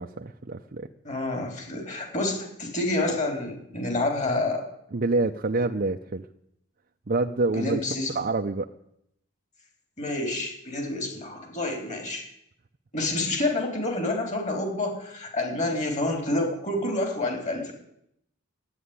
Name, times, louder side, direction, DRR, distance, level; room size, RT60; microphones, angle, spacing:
voice 1, 0.0-0.9 4.9-6.3 7.1-7.8 8.1-8.7, right 3 dB, 45° right, 3 dB, 0.7 m, -27 dB
voice 2, 1.0-4.7 7.5-8.1 10.0-12.3 12.9-17.7, left 2 dB, 35° left, 3 dB, 3.9 m, -28 dB
13.0 x 9.9 x 9.8 m, 0.76 s
head